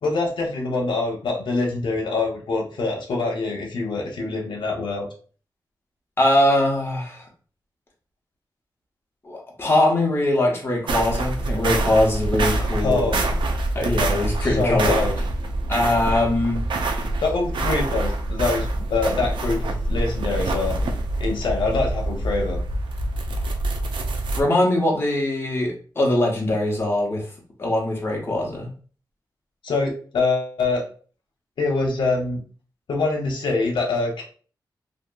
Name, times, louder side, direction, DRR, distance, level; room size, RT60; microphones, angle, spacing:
voice 1, 0.0-5.1 12.8-13.3 14.4-15.1 17.2-20.8 21.2-22.6 29.6-30.8 31.6-32.4 32.9-34.3, left 3 dB, 90° left, 0 dB, 0.7 m, -24 dB
voice 2, 6.2-7.2 9.2-13.1 13.7-15.0 15.7-16.7 24.4-27.2 27.6-28.7, left 1 dB, 30° left, -1 dB, 0.8 m, -22 dB
sound 1, 10.9-24.4, right 2 dB, 85° right, 0.4 m, -25 dB
2.7 x 2.6 x 2.2 m, 0.40 s
wide cardioid pair, 105°, 8 cm